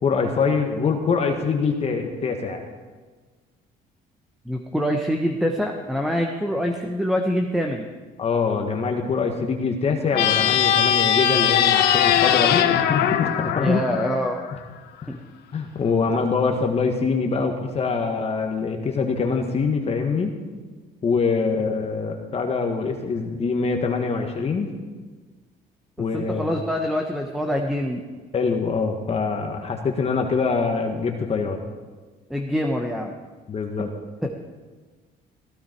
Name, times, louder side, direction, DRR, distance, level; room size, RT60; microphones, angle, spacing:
voice 1, 0.0-2.6 8.2-13.8 15.0-15.1 15.5-20.3 21.0-24.7 26.0-26.5 28.3-31.6 33.5-33.9, left 5 dB, 40° left, 3 dB, 1.6 m, -24 dB
voice 2, 4.4-7.9 13.6-14.4 15.1-15.2 26.1-28.0 32.3-33.1 34.2-34.3, equal, ahead, 2 dB, 1.2 m, -25 dB
sound 1, 10.1-14.6, left 10 dB, 75° left, 1.0 m, -20 dB
16.0 x 15.5 x 4.6 m, 1.4 s
cardioid pair, 110°, 17 cm